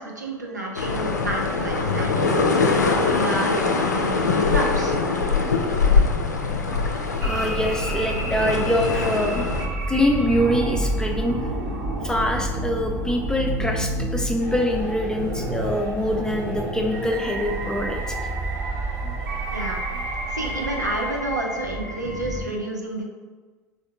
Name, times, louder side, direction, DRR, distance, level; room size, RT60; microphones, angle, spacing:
voice 1, 0.0-5.0 19.5-19.8 20.3-23.0, right 1 dB, 85° right, 0 dB, 0.5 m, -30 dB
sound 1, 0.8-9.7, left 4 dB, 80° left, 0.4 m, -22 dB
voice 2, 7.2-9.4 9.9-11.4 12.0-18.2, equal, 5° left, 1 dB, 0.4 m, -24 dB
sound 2, 7.2-22.5, right 1 dB, 65° right, 0.9 m, -29 dB
sound 3, 14.4-21.2, right 1 dB, 35° right, 0.9 m, -40 dB
3.6 x 2.5 x 3.4 m, 1.4 s
figure-of-eight pair, 70°, 9 cm